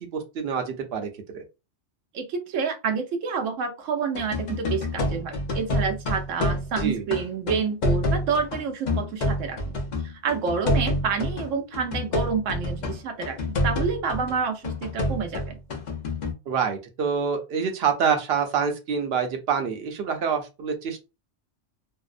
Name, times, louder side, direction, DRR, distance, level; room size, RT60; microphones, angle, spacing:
voice 1, 0.1-1.1 1.3-1.4 6.8-7.0 16.5-21.0, right 6 dB, 65° right, 5 dB, 0.8 m, -26 dB
voice 2, 2.1-9.7 10.0-13.4 13.6-15.6, right 5 dB, 90° right, 6 dB, 1.0 m, -28 dB
sound 1, 4.1-14.4 14.6-16.3, left 1 dB, 55° left, 0.5 m, -27 dB
2.6 x 2.0 x 2.4 m, 0.27 s
omnidirectional pair, 1.3 m